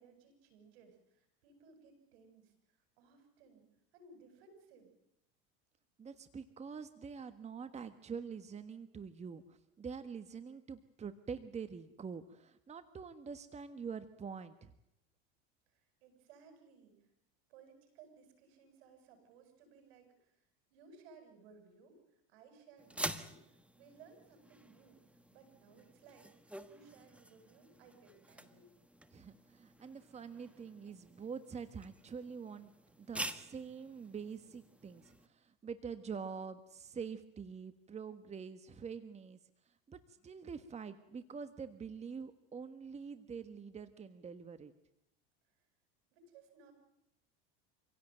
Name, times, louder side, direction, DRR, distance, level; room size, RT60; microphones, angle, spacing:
voice 1, 0.0-3.6 3.9-4.9 15.7-17.1 17.5-28.7 45.5-45.6 46.1-46.7, right 5 dB, 80° right, 7 dB, 7.8 m, -61 dB
voice 2, 6.0-14.7 29.1-32.7 33.0-39.4 39.6-44.7, right 6 dB, 20° right, 11 dB, 1.4 m, -46 dB
sound 1, 22.8-35.3, right 1 dB, 5° right, 1.5 m, -48 dB
26.5 x 17.0 x 9.2 m, 0.80 s
supercardioid pair, 110°, 30 cm